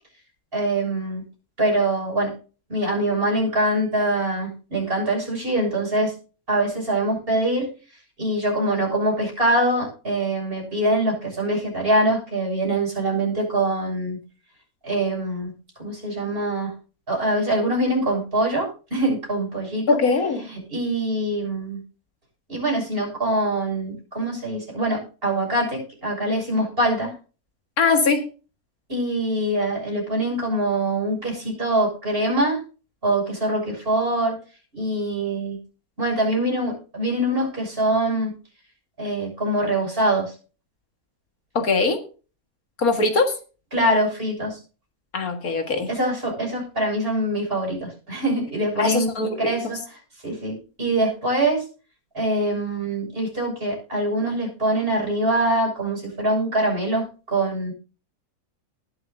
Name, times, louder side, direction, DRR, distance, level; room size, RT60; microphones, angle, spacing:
voice 1, 0.5-1.2 1.6-2.3 2.7-6.1 6.5-7.7 8.2-14.2 14.8-15.5 15.8-16.7 17.1-20.0 20.5-21.8 22.5-27.1 28.9-32.6 33.0-34.4 34.7-35.6 36.0-38.3 39.0-40.3 43.7-44.6 45.9-49.1 49.4-49.8 50.2-51.7 52.1-57.7, right 1 dB, 40° right, -2 dB, 6.9 m, -24 dB
voice 2, 19.9-20.4 27.8-28.2 41.6-42.0 42.8-43.3 45.1-45.9 48.8-49.5, left 4 dB, 75° left, 5 dB, 2.1 m, -21 dB
19.5 x 7.6 x 2.6 m, 0.35 s
omnidirectional pair, 1.5 m